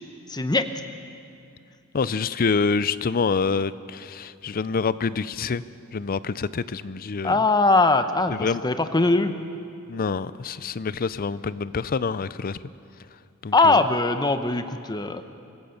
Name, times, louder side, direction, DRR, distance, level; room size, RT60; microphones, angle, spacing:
voice 1, 0.3-0.7 7.2-9.4 13.5-15.2, left 3 dB, 20° left, 9 dB, 0.8 m, -21 dB
voice 2, 1.9-5.6 5.9-7.4 8.3-8.6 9.9-12.6 13.4-13.8, left 5 dB, 40° left, 17 dB, 0.5 m, -26 dB
25.5 x 16.0 x 6.6 m, 2.6 s
head